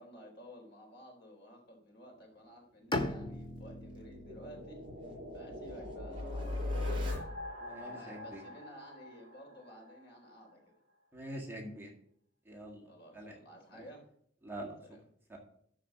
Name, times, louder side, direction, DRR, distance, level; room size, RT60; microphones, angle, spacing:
voice 1, 0.0-7.2 7.8-10.8 12.9-14.1 14.8-15.0, equal, 60° left, 1 dB, 3.7 m, -54 dB
Bowed string instrument, 2.9-6.8, left 1 dB, 25° left, 1.0 m, -41 dB
sound 1, 3.3-10.0, left 2 dB, 25° right, 5.2 m, -40 dB
voice 2, 7.6-8.4 11.1-11.9 12.5-12.8 13.1-13.3 13.7-13.8 14.4-14.7 15.3-15.4, right 1 dB, 10° right, -1 dB, 1.9 m, -44 dB
12.5 x 4.7 x 6.0 m, 0.66 s
head